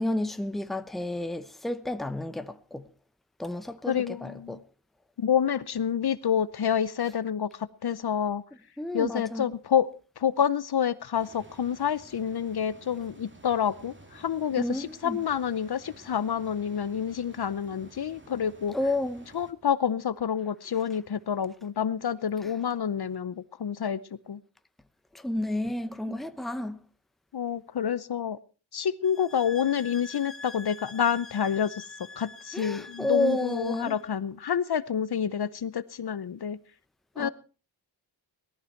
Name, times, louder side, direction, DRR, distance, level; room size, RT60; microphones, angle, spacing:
voice 1, 0.0-2.8 3.4-4.6 8.8-9.5 14.6-15.2 18.7-19.3 22.4-22.5 25.1-26.8 32.5-34.0 37.2-37.3, left 1 dB, ahead, 0.8 m, -31 dB
voice 2, 3.9-4.6 5.2-8.4 8.9-9.9 10.2-18.7 19.3-24.0 24.3-24.4 26.0-26.2 27.3-28.4 28.7-31.8 32.2-36.6 37.2-37.3, left 8 dB, 55° left, 0.8 m, -28 dB
sound 1, 11.1-19.5, right 2 dB, 25° right, 2.3 m, -52 dB
sound 2, 29.0-34.1, left 3 dB, 30° left, 1.3 m, -46 dB
18.5 x 13.5 x 4.5 m
wide cardioid pair, 130°, 46 cm